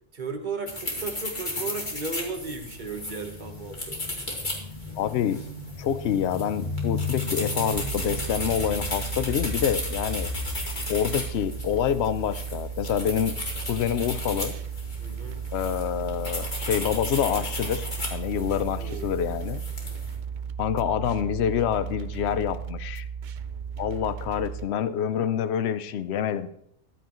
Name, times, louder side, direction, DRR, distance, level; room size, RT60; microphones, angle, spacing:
voice 1, 0.1-4.0 4.8-4.9 15.0-15.4 18.7-19.2, right 4 dB, 40° right, 5 dB, 1.3 m, -35 dB
sound 1, 0.7-20.1, left 2 dB, 40° left, 2.3 m, -34 dB
voice 2, 5.0-5.4 5.8-10.3 10.9-13.3 13.7-14.5 15.5-19.6 20.6-23.0 23.8-26.5, left 9 dB, 65° left, 12 dB, 0.9 m, -27 dB
sound 2, 7.7-24.7, right 7 dB, 60° right, 0.5 m, -35 dB
14.0 x 12.0 x 3.1 m, 0.72 s
omnidirectional pair, 1.2 m